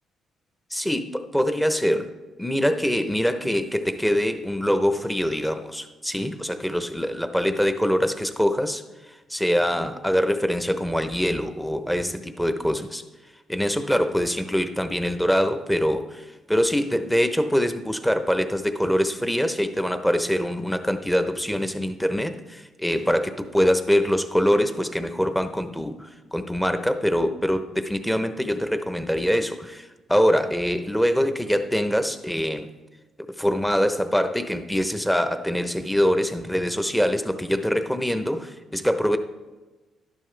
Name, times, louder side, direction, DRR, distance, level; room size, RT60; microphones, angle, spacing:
voice 1, 0.7-2.1 2.4-8.8 9.3-13.0 13.5-32.7 33.4-39.2, equal, 5° left, 8 dB, 0.8 m, -24 dB
12.0 x 11.0 x 3.4 m, 1.2 s
cardioid pair, 90°, 0 cm